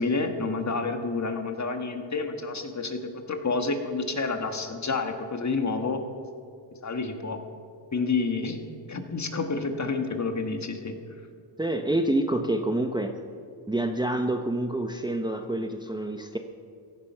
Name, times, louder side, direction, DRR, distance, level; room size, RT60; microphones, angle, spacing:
voice 1, 0.0-6.0 6.8-7.4 7.9-8.6 8.9-11.0, left 4 dB, 35° left, 6 dB, 1.7 m, -29 dB
voice 2, 11.6-13.1 13.7-16.4, right 1 dB, 10° right, 5 dB, 0.9 m, -27 dB
16.0 x 11.5 x 5.7 m, 2.2 s
cardioid pair, 65°, 48 cm